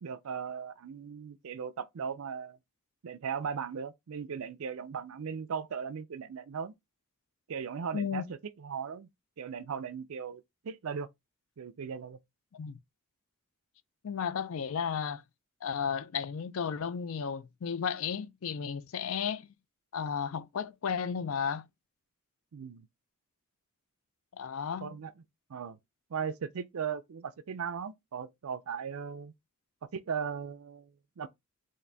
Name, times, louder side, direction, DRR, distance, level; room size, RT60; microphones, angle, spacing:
voice 1, 0.0-2.6 3.0-6.7 7.5-9.1 9.4-11.1 11.6-12.2 22.5-22.9 24.8-25.1 25.5-25.8 26.1-29.3 29.9-31.3, right 6 dB, 70° right, 0.4 m, -38 dB
voice 2, 7.9-8.2 12.5-12.8 14.0-15.2 15.6-19.5 19.9-21.6 24.3-25.0, left 7 dB, 70° left, 0.4 m, -34 dB
3.7 x 2.5 x 3.3 m
head